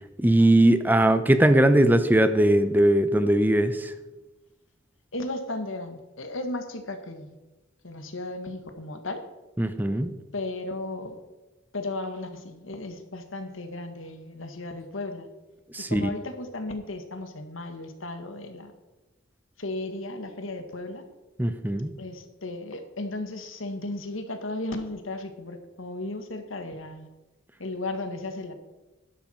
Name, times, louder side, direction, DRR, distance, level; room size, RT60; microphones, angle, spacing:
voice 1, 0.2-3.9 9.6-10.1 15.7-16.0 21.4-21.9, right 1 dB, 10° right, 10 dB, 0.6 m, -20 dB
voice 2, 5.1-7.4 7.8-9.2 10.3-11.2 11.7-15.3 15.8-18.7 19.6-21.1 22.0-27.1 27.6-28.5, left 2 dB, 90° left, 7 dB, 1.7 m, -35 dB
12.0 x 11.0 x 4.4 m, 1.1 s
head